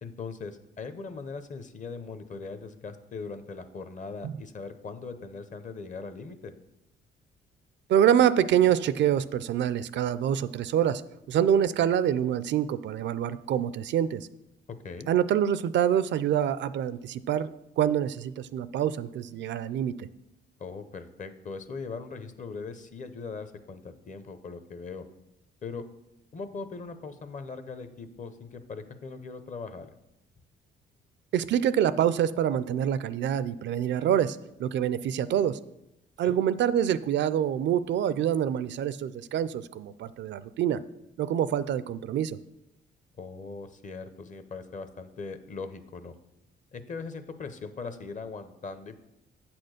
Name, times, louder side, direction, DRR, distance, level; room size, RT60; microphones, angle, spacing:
voice 1, 0.0-6.5 14.8-15.1 20.6-25.0 25.6-25.8 26.3-29.9 36.2-36.4 43.2-46.1 46.7-49.0, left 4 dB, 40° left, 10 dB, 0.8 m, -40 dB
voice 2, 7.9-11.0 11.3-14.3 15.1-17.5 17.8-20.1 31.3-35.6 36.2-40.8 41.2-42.4, right 10 dB, 65° right, 16 dB, 0.4 m, -26 dB
8.1 x 4.4 x 6.4 m, 0.89 s
cardioid pair, 90°, 20 cm